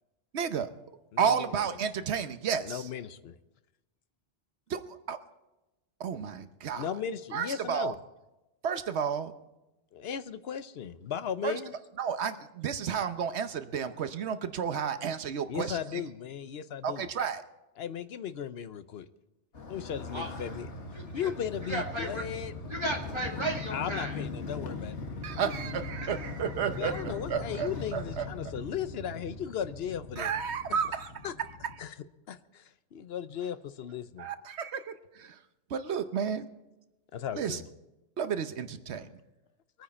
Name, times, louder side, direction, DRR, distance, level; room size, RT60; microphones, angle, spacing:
voice 1, 0.3-0.7 1.2-2.9 4.7-5.2 6.0-6.9 7.3-7.9 8.6-9.3 11.4-11.6 12.0-16.0 16.8-17.4 25.2-28.3 30.2-31.1 34.2-35.4 35.7-36.5 37.3-37.6 38.2-39.1, right 7 dB, 75° right, 10 dB, 1.1 m, -32 dB
voice 2, 1.1-1.5 2.6-3.3 6.7-7.9 9.9-11.7 15.5-17.1 17.8-19.1 19.7-20.7 21.1-22.5 23.7-24.9 25.4-25.5 26.8-30.3 31.2-31.3 31.8-31.9 32.3-34.3 37.1-37.7, left 8 dB, 65° left, 13 dB, 0.9 m, -36 dB
Motorcycle, 19.5-31.8, left 3 dB, 80° left, 1.8 m, -40 dB
voice 3, 20.9-21.3 21.6-22.3 22.7-24.2 26.0-26.2, right 1 dB, 25° right, 0 dB, 2.1 m, -35 dB
23.0 x 9.4 x 4.3 m, 0.99 s
omnidirectional pair, 1.2 m